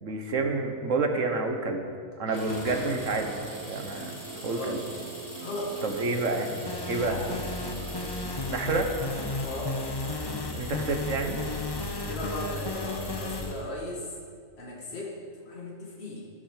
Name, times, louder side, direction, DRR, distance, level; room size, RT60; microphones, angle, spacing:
voice 1, 0.0-1.8 2.2-4.1 4.4-4.8 5.8-6.5 6.9-7.2 8.5-8.9 10.5-11.4, right 3 dB, 65° right, 4 dB, 1.7 m, -29 dB
sound 1, 2.3-13.6, left 1 dB, 80° left, 3.0 m, -43 dB
Guitar, 2.3-8.8, right 5 dB, 80° right, 1.3 m, -43 dB
voice 2, 4.5-4.8 5.4-5.8 7.1-7.4 9.4-9.8 12.1-14.1 14.6-16.3, left 1 dB, 45° left, -3 dB, 2.5 m, -37 dB
sound 2, 6.7-13.5, left 2 dB, 25° left, 0.6 m, -34 dB
12.5 x 11.5 x 6.6 m, 2.2 s
omnidirectional pair, 1.5 m